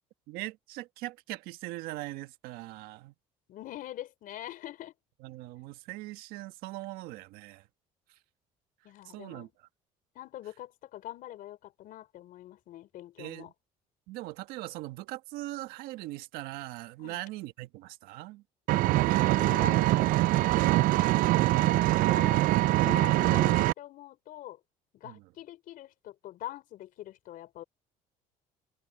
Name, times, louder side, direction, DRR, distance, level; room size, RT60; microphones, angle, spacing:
voice 1, 0.3-3.1 5.2-7.7 9.1-9.5 13.2-13.5 14.1-18.4 25.0-25.2, right 18 dB, 80° right, 1.7 m, -40 dB
voice 2, 3.5-4.9 8.8-9.5 10.1-13.5 17.0-17.2 19.2-21.1 21.6-22.5 22.8-24.6 24.9-27.6, left 13 dB, 65° left, 4.1 m, -44 dB
Engine, 18.7-23.7, right 17 dB, 65° right, 0.4 m, -23 dB
open air
supercardioid pair, 95°, 15 cm